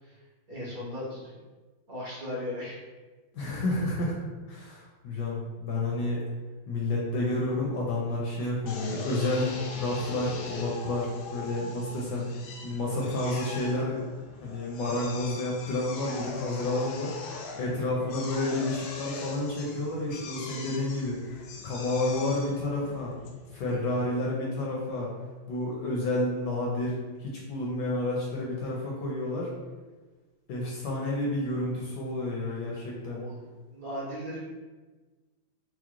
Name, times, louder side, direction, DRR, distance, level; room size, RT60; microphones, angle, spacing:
voice 1, 0.5-1.3 1.9-2.8 33.0-34.4, left 1 dB, 55° right, -7 dB, 1.3 m, -37 dB
voice 2, 3.3-4.1 4.5-6.2 6.7-9.5 9.8-14.0 14.4-17.1 17.6-23.1 23.5-25.1 25.5-29.5 30.5-33.2, left 2 dB, 70° left, -3 dB, 1.1 m, -30 dB
Drill, 8.7-23.9, left 4 dB, 90° left, 1.4 m, -41 dB
4.7 x 2.0 x 3.0 m, 1.3 s
omnidirectional pair, 2.2 m